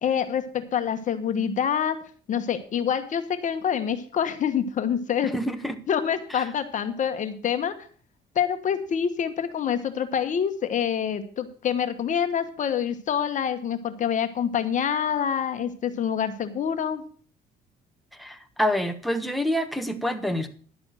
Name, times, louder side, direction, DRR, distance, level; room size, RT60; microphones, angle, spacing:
voice 1, 0.0-2.0 2.3-5.3 5.9-7.7 8.3-17.0, left 8 dB, 50° left, 9 dB, 1.3 m, -26 dB
voice 2, 5.3-5.8 6.3-6.4 18.2-20.5, equal, ahead, 6 dB, 1.3 m, -27 dB
11.5 x 7.0 x 6.5 m, 0.43 s
cardioid pair, 110°, 17 cm